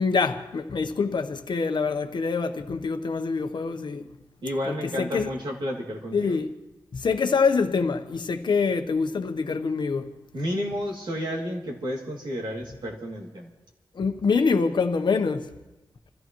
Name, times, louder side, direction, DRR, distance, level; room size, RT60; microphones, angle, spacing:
voice 1, 0.0-4.1 4.7-5.3 6.1-6.5 6.9-10.1 13.9-15.5, left 4 dB, 60° left, 1.0 m, -25 dB
voice 2, 4.4-6.4 10.3-13.5, equal, 60° right, 2.6 m, -31 dB
27.5 x 14.5 x 3.1 m
wide cardioid pair, 120°, 9 cm